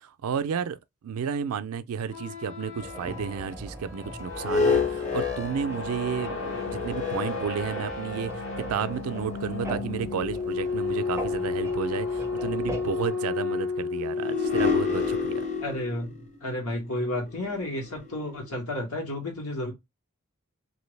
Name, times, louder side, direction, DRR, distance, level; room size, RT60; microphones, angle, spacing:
voice 1, 0.0-15.4, right 7 dB, 75° right, 0.4 m, -32 dB
sound 1, 2.0-15.8, left 4 dB, 60° left, 0.9 m, -32 dB
sound 2, 2.8-13.1, right 1 dB, 10° right, 0.4 m, -41 dB
sound 3, 4.3-8.1 8.8-8.9 14.1-18.4, left 5 dB, 30° left, 0.8 m, -30 dB
voice 2, 15.6-19.7, left 1 dB, 80° left, 1.7 m, -32 dB
2.9 x 2.6 x 3.2 m
head